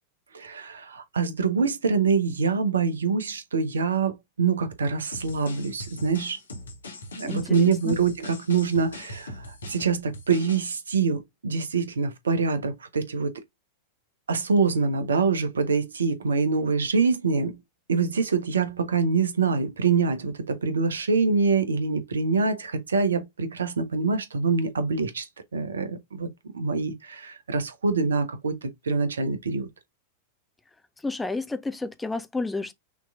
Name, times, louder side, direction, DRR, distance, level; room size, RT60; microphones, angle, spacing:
voice 1, 0.3-6.4 7.1-13.3 14.3-17.6 17.9-26.3 26.5-29.7, right 5 dB, 70° right, 0.9 m, -25 dB
sound 1, 5.1-10.7, left 1 dB, 70° left, 1.2 m, -41 dB
voice 2, 7.2-8.0 31.0-32.7, left 3 dB, 10° left, 0.6 m, -31 dB
5.8 x 3.0 x 2.4 m
figure-of-eight pair, 90°, 0 cm